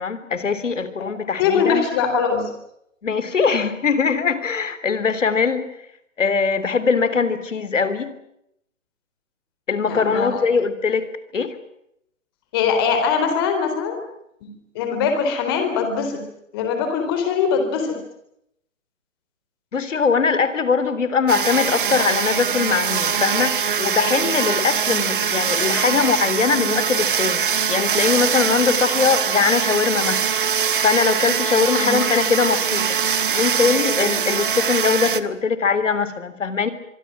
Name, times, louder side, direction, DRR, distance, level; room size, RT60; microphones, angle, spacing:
voice 1, 0.0-1.8 3.0-5.7 6.2-8.1 9.7-11.6 19.7-30.2 30.8-32.9 33.3-36.7, left 5 dB, 70° left, 14 dB, 3.6 m, -21 dB
voice 2, 1.4-2.5 9.8-10.4 12.5-14.0 14.4-14.5 14.7-16.2 16.5-18.0 31.8-32.0, left 6 dB, 20° left, 6 dB, 3.9 m, -22 dB
sound 1, 21.3-35.2, right 7 dB, 40° right, 1.2 m, -22 dB
25.5 x 24.0 x 7.5 m, 0.78 s
hypercardioid pair, 175°, 39 cm